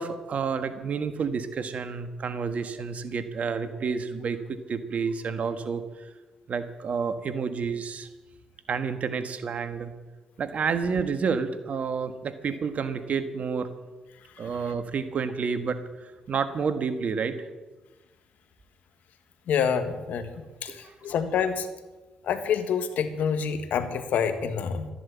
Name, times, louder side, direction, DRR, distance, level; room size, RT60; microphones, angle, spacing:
voice 1, 0.0-6.1 6.5-8.1 8.7-9.9 10.4-13.7 14.4-17.5 20.7-20.9, right 5 dB, 60° right, 10 dB, 1.5 m, -30 dB
voice 2, 19.5-20.3 20.6-21.7 22.3-24.9, left 7 dB, 75° left, 9 dB, 1.5 m, -27 dB
13.5 x 11.0 x 8.4 m, 1.2 s
supercardioid pair, 55°, 3 cm